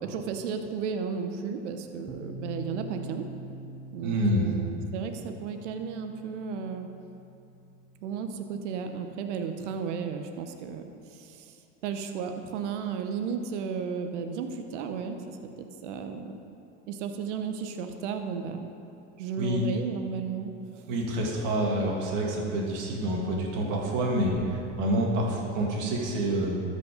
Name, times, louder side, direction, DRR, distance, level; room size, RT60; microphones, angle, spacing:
voice 1, 0.0-3.3 3.9-6.9 8.0-11.6 11.8-16.4 16.9-18.7 19.2-20.8, right 6 dB, 75° right, 6 dB, 1.0 m, -34 dB
sound 1, 2.1-9.8, right 1 dB, ahead, 1.4 m, -45 dB
voice 2, 4.0-4.4 19.4-19.6 20.9-26.6, right 1 dB, 55° right, -1 dB, 2.4 m, -27 dB
13.0 x 5.5 x 5.2 m, 2.6 s
hypercardioid pair, 100°, 35 cm